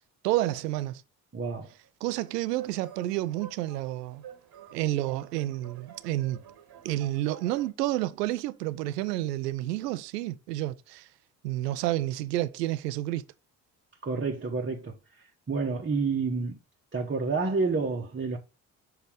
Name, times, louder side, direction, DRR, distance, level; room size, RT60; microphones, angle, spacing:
voice 1, 0.2-1.0 2.0-4.2 4.7-6.4 6.8-11.1 11.4-13.2, right 15 dB, 75° right, 0.7 m, -30 dB
voice 2, 1.3-1.7 14.0-14.9 15.5-16.6 16.9-18.4, right 4 dB, 25° right, 1.4 m, -29 dB
sound 1, 2.1-7.7, right 8 dB, 50° right, 1.5 m, -49 dB
7.0 x 3.3 x 5.0 m
figure-of-eight pair, 45°, 48 cm